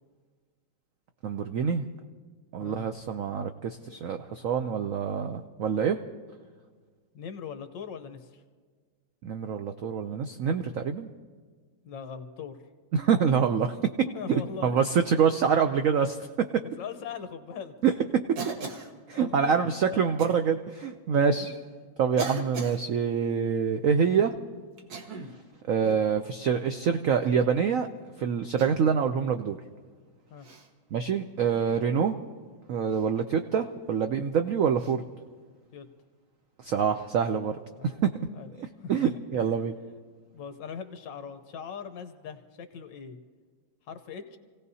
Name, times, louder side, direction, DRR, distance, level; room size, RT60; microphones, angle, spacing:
voice 1, 1.2-1.9 2.5-6.0 9.2-11.1 12.9-13.8 14.3-16.2 17.8-17.9 19.1-21.5 22.0-24.3 25.7-27.9 28.2-29.6 30.9-32.2 32.7-35.0 36.6-37.6 37.8-38.1 38.9-39.7, right 6 dB, 85° right, 7 dB, 0.7 m, -26 dB
voice 2, 7.1-8.4 11.8-12.6 14.0-14.8 15.1-15.2 16.6-17.7 19.1-19.6 19.8-20.1 21.4-21.5 30.3-30.5 35.7-35.9 37.8-38.0 38.3-38.5 38.8-39.5 40.3-43.2 43.8-44.4, left 6 dB, 70° left, 8 dB, 1.6 m, -40 dB
Cough, 18.4-18.9 20.2-20.4 21.3-21.4 22.2-22.8 24.8-25.4 25.8-26.1 27.2-27.5 28.6-28.9 30.4-30.7 32.9-33.1 34.8-34.9, right 3 dB, 55° right, 1.7 m, -38 dB
28.0 x 17.0 x 2.8 m, 1.5 s
omnidirectional pair, 2.1 m